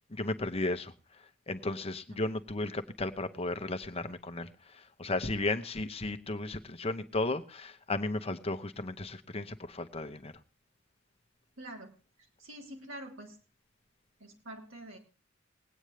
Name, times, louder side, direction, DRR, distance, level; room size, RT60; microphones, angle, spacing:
voice 1, 0.1-0.9 1.5-10.3, left 2 dB, 30° left, 0.9 m, -34 dB
voice 2, 11.6-11.9 12.4-13.4 14.2-15.0, right 1 dB, 85° right, 2.6 m, -46 dB
21.0 x 9.0 x 3.2 m
head